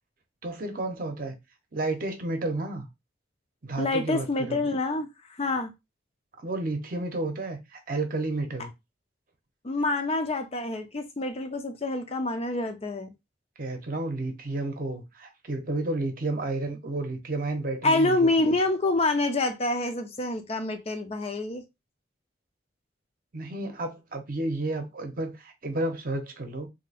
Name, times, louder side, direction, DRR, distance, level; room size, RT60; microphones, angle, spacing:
voice 1, 0.4-1.4 1.7-2.9 3.6-4.6 6.4-8.7 13.6-18.5 23.3-26.7, right 2 dB, 50° right, 0.7 m, -31 dB
voice 2, 3.8-5.1 5.4-5.7 9.6-13.1 17.8-21.6, left 2 dB, 35° left, 0.5 m, -27 dB
2.7 x 2.2 x 4.0 m
head